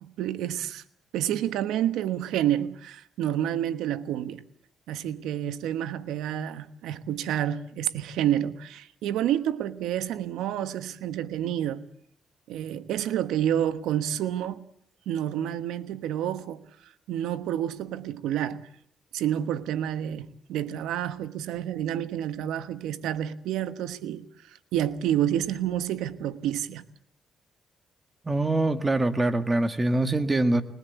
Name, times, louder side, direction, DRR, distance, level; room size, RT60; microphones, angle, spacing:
voice 1, 0.0-0.8 1.1-4.4 4.9-11.8 12.5-14.6 15.1-16.6 17.1-18.7 19.1-26.8, right 11 dB, 90° right, 1.2 m, -29 dB
voice 2, 28.3-30.6, right 2 dB, 20° right, 1.9 m, -24 dB
21.5 x 21.0 x 8.2 m
cardioid pair, 90°, 0 cm